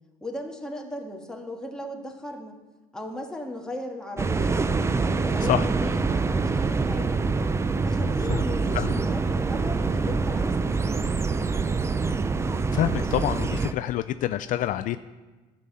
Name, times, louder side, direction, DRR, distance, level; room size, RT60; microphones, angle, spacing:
voice 1, 0.2-2.6 2.9-4.6 5.0-7.2 7.8-11.2, left 1 dB, 5° left, 0 dB, 1.6 m, -37 dB
sound 1, 4.2-13.7, right 4 dB, 20° right, 0.4 m, -25 dB
voice 2, 12.7-15.0, left 12 dB, 60° left, 11 dB, 0.4 m, -26 dB
12.0 x 5.6 x 7.5 m, 1.2 s
cardioid pair, 115°, 15 cm